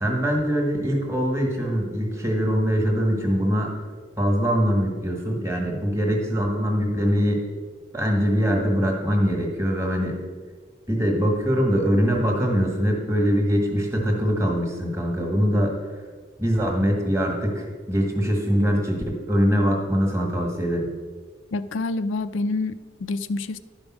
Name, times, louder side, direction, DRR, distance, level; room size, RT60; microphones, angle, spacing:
voice 1, 0.0-3.7 4.2-7.4 7.9-10.2 10.9-15.7 16.4-20.9, equal, 15° right, 1 dB, 1.5 m, -23 dB
voice 2, 21.5-23.6, left 3 dB, 90° left, 12 dB, 0.5 m, -27 dB
11.0 x 5.3 x 6.1 m, 1.5 s
head